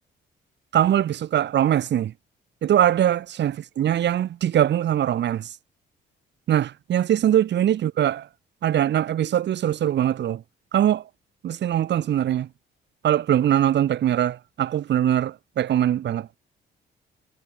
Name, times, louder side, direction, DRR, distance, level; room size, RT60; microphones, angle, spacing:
voice 1, 0.7-2.1 2.6-5.5 6.5-8.3 8.6-10.4 10.7-11.0 11.4-12.5 13.0-16.3, right 11 dB, 60° right, 1.2 m, -22 dB
cardioid pair, 90°, 20 cm